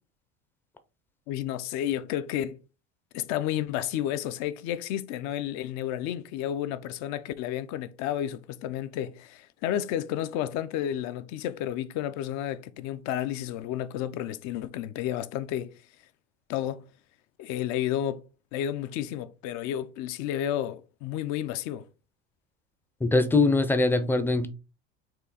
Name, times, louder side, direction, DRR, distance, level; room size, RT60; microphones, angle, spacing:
voice 1, 1.3-2.6 3.1-15.7 16.5-16.9 17.4-18.2 18.5-21.8, left 11 dB, 55° left, 0.5 m, -31 dB
voice 2, 23.0-24.5, left 3 dB, 5° left, 0.5 m, -22 dB
4.5 x 2.7 x 4.0 m
supercardioid pair, 110°, 33 cm